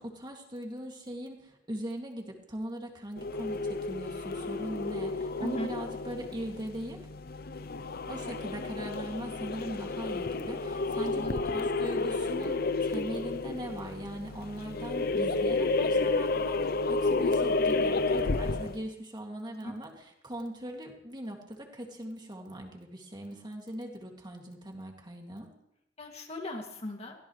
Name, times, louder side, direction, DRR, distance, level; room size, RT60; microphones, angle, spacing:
voice 1, 0.0-7.0 8.1-25.5, right 1 dB, 25° right, 1 dB, 2.4 m, -40 dB
sound 1, 3.2-18.9, left 3 dB, 55° left, 0.7 m, -31 dB
voice 2, 5.4-5.7 11.1-11.6 19.6-19.7 26.0-27.1, left 1 dB, 35° left, 2 dB, 2.4 m, -38 dB
23.5 x 16.5 x 3.3 m, 0.80 s
head